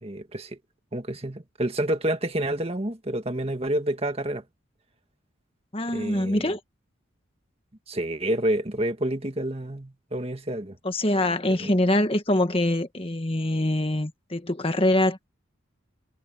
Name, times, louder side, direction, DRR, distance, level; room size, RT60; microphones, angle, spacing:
voice 1, 0.0-0.6 0.9-4.4 5.9-6.5 7.9-10.8 11.6-11.7, right 1 dB, 30° right, 1.7 m, -28 dB
voice 2, 5.7-6.6 10.8-15.3, left 1 dB, 25° left, 1.5 m, -24 dB
head